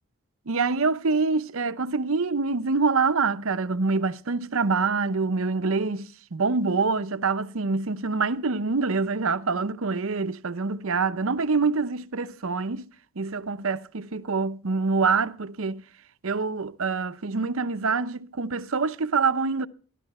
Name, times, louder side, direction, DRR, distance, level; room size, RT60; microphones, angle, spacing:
voice 1, 0.5-12.9 13.2-15.8 16.2-19.7, right 4 dB, 65° right, 0.7 m, -25 dB
15.0 x 11.5 x 4.2 m
head